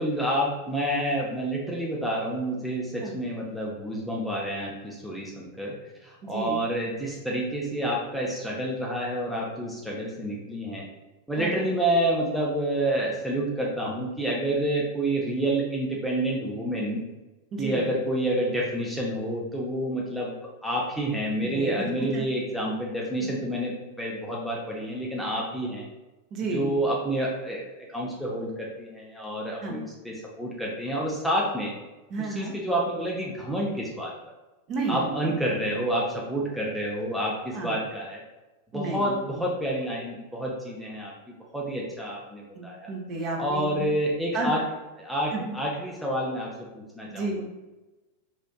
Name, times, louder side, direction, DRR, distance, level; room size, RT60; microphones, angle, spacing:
voice 1, 0.0-5.8 6.0-10.9 11.3-17.0 17.6-20.3 20.6-25.9 26.5-31.7 32.2-34.1 34.9-38.2 38.7-41.1 41.5-42.9 43.4-44.6 45.0-47.4, right 1 dB, ahead, -4 dB, 0.5 m, -29 dB
voice 2, 6.2-6.6 11.4-11.6 17.5-17.8 21.4-22.2 23.2-23.3 26.3-26.7 29.6-29.8 32.1-32.5 34.7-35.0 35.3-35.4 37.5-37.8 38.7-39.2 42.5-43.9 44.3-44.5 45.3-45.6 47.0-47.4, right 3 dB, 35° right, -1 dB, 0.7 m, -32 dB
4.2 x 2.5 x 2.3 m, 1.1 s
figure-of-eight pair, 90°, 0 cm